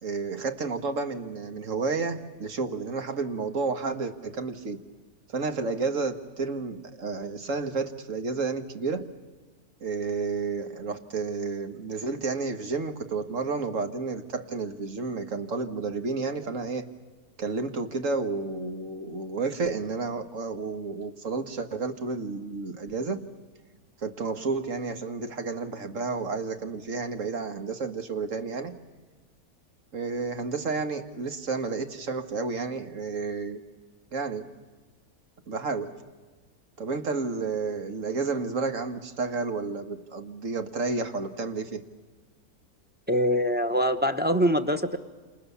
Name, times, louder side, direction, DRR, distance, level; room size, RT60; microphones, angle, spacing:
voice 1, 0.0-4.8 5.3-9.1 9.8-16.9 17.4-23.3 24.0-28.7 29.9-33.6 34.1-34.5 35.5-36.0 36.8-41.8, right 4 dB, 60° right, 8 dB, 1.9 m, -31 dB
voice 2, 43.1-45.0, equal, 5° right, 7 dB, 1.1 m, -24 dB
28.5 x 28.0 x 7.0 m, 1.3 s
omnidirectional pair, 1.6 m